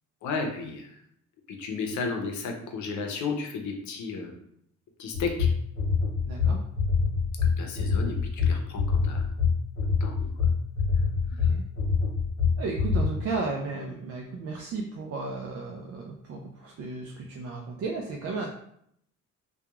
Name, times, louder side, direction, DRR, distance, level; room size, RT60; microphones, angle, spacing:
voice 1, 0.2-1.0 1.5-4.4 5.0-5.5 7.6-9.3 10.0-10.3 11.4-11.5, left 4 dB, 70° left, 3 dB, 0.7 m, -33 dB
sound 1, 5.1-13.1, left 5 dB, 40° left, 1.0 m, -25 dB
voice 2, 6.2-6.6 11.3-11.6 12.6-18.5, right 3 dB, 50° right, 1 dB, 0.4 m, -34 dB
2.9 x 2.3 x 2.3 m, 0.71 s
cardioid pair, 90°, 30 cm